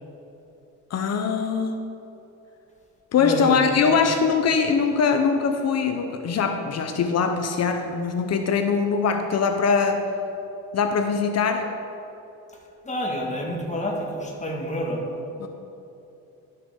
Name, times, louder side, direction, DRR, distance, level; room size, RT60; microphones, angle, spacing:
voice 1, 0.9-1.8 3.1-10.0 10.7-11.7 15.4-15.5, left 5 dB, 60° left, 6 dB, 0.8 m, -22 dB
voice 2, 3.1-3.9 12.8-15.1, equal, 25° left, 0 dB, 1.7 m, -29 dB
12.0 x 6.5 x 3.7 m, 2.9 s
cardioid pair, 90°, 30 cm